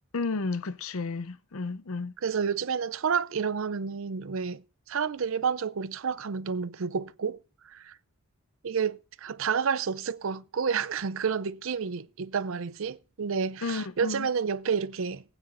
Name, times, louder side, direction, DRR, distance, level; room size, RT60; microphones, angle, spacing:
voice 1, 0.1-2.1 13.6-14.3, left 3 dB, 70° left, 0.7 m, -32 dB
voice 2, 2.2-4.6 4.9-7.4 7.6-8.0 8.6-15.2, right 6 dB, 65° right, 0.5 m, -30 dB
19.5 x 9.0 x 2.6 m
head